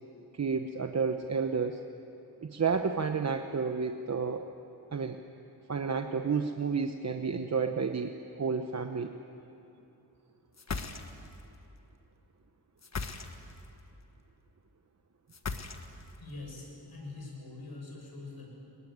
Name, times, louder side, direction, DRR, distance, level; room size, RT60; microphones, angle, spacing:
voice 1, 0.4-1.8 2.4-4.5 4.9-5.2 5.7-8.1 8.4-9.1, right 5 dB, 45° right, 6 dB, 0.9 m, -31 dB
sound 1, 10.5-11.4 12.8-13.7 15.3-16.2, left 4 dB, 45° left, 1.4 m, -37 dB
voice 2, 16.2-18.5, left 3 dB, 70° left, -1 dB, 7.4 m, -44 dB
23.0 x 21.0 x 9.5 m, 2.8 s
wide cardioid pair, 105°, 39 cm